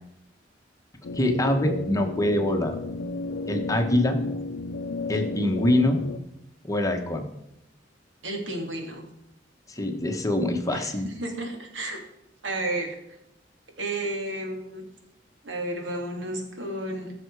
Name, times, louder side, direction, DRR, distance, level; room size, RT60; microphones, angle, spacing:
sound 1, 1.0-6.2, left 3 dB, 75° left, 0.6 m, -33 dB
voice 1, 1.1-2.8 3.5-4.2 5.1-6.0 6.6-7.2 9.7-11.1, left 1 dB, 20° left, 4 dB, 1.2 m, -24 dB
voice 2, 8.2-9.0 10.7-12.0 12.4-13.2 13.8-14.8 15.4-17.1, right 1 dB, 80° right, 2 dB, 2.5 m, -32 dB
15.0 x 6.7 x 4.7 m, 0.83 s
head